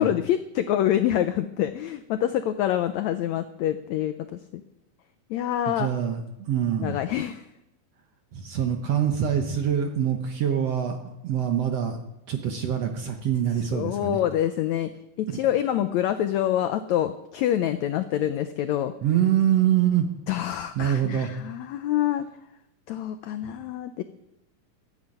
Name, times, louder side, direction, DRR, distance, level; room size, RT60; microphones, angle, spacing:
voice 1, 0.0-4.6 5.3-5.9 6.8-7.4 13.7-14.9 15.2-18.9 20.3-22.2 22.9-24.0, left 11 dB, 85° left, 10 dB, 1.6 m, -26 dB
voice 2, 5.7-7.0 8.3-11.0 11.2-12.0 12.3-14.2 19.0-20.1 20.8-21.3, right 9 dB, 65° right, 5 dB, 1.7 m, -24 dB
14.0 x 9.6 x 8.9 m, 0.87 s
omnidirectional pair, 4.0 m